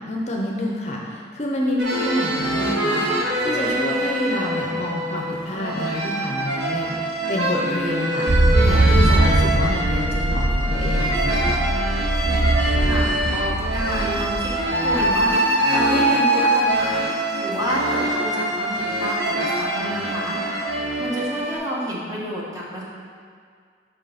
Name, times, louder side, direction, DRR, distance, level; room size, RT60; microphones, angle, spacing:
voice 1, 0.0-3.0 3.4-11.6, left 1 dB, 40° left, -1 dB, 0.6 m, -28 dB
sound 1, 1.8-21.6, right 1 dB, 80° right, 1.1 m, -24 dB
sound 2, 8.3-15.3, right 1 dB, 40° right, 0.3 m, -21 dB
voice 2, 12.8-17.1 17.4-20.4 21.0-22.8, equal, 20° right, -6 dB, 1.1 m, -29 dB
5.9 x 4.5 x 5.0 m, 2.1 s
head